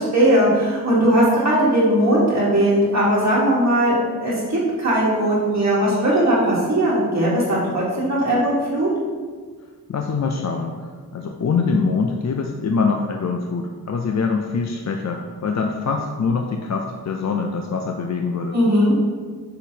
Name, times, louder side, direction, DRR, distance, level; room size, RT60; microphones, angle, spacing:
voice 1, 0.0-3.9 4.2-8.9 18.5-18.9, right 1 dB, 45° right, -8 dB, 1.4 m, -18 dB
voice 2, 9.9-18.6, left 4 dB, 50° left, 3 dB, 0.4 m, -24 dB
6.3 x 5.7 x 2.7 m, 1.5 s
wide cardioid pair, 100°, 37 cm